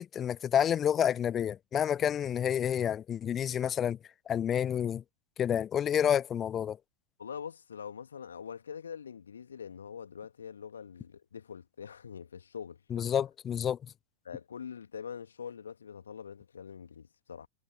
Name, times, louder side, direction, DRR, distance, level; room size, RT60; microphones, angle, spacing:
voice 1, 0.0-4.0 4.3-5.0 5.4-6.8 12.9-13.8, left 9 dB, 25° left, 0.6 m, -29 dB
voice 2, 7.2-13.1 14.2-17.5, left 7 dB, 70° left, 2.8 m, -44 dB
figure-of-eight pair, 90°, 0 cm